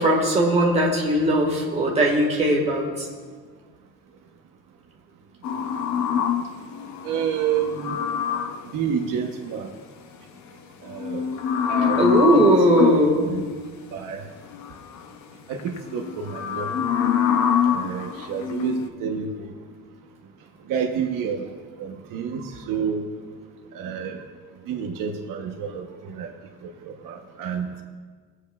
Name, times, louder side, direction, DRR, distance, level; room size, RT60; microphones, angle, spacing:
voice 1, 0.0-2.9 12.0-13.3, right 1 dB, 20° right, -2 dB, 1.6 m, -19 dB
sound 1, 5.4-8.7 10.9-13.1 14.4-15.0 15.5-18.9, left 8 dB, 55° left, 0.6 m, -25 dB
voice 2, 7.0-8.0 8.7-9.7 10.8-11.3 11.7-12.1 12.3-12.4 12.8-13.4 13.9-14.2 15.5-16.9 17.6-19.5 20.7-21.4 21.8-23.0 23.7-24.2 24.7-26.3 26.6-27.7, right 7 dB, 75° right, 4 dB, 0.9 m, -29 dB
19.5 x 7.9 x 2.3 m, 1.6 s
cardioid pair, 170°, 34 cm